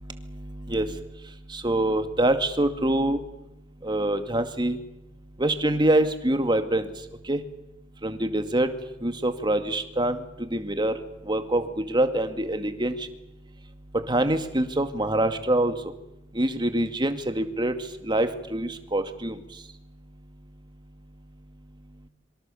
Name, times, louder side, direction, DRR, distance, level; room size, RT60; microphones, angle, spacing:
voice 1, 0.4-1.0 1.5-3.2 3.8-4.8 5.4-6.9 7.2-7.4 8.0-8.7 9.0-11.0 11.3-13.1 14.1-15.7 16.3-17.8 18.0-19.4, right 1 dB, 25° right, 8 dB, 2.1 m, -25 dB
26.0 x 24.5 x 7.2 m, 0.89 s
head